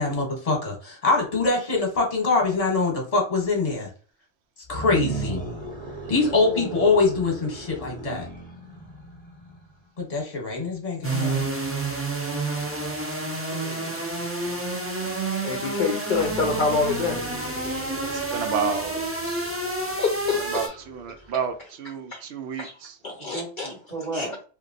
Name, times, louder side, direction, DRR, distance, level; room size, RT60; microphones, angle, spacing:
voice 1, 0.0-3.9 4.7-5.4 6.1-8.3 10.0-11.5, left 3 dB, 35° left, 1.1 m, -23 dB
sound 1, 4.6-9.8 16.1-21.7, right 2 dB, 10° left, 0.9 m, -38 dB
voice 2, 6.4-7.2 13.3-14.0 14.4-14.6 23.2-24.4, right 2 dB, 40° right, 0.9 m, -36 dB
sound 2, 11.0-20.7, right 2 dB, 20° right, 0.4 m, -29 dB
voice 3, 15.4-17.2 20.0-20.7 22.1-22.2 22.6-22.7 23.0-23.7 24.1-24.3, left 4 dB, 55° left, 0.6 m, -26 dB
voice 4, 18.0-19.6 20.4-23.0, right 6 dB, 75° right, 0.8 m, -31 dB
2.9 x 2.5 x 2.6 m
omnidirectional pair, 1.1 m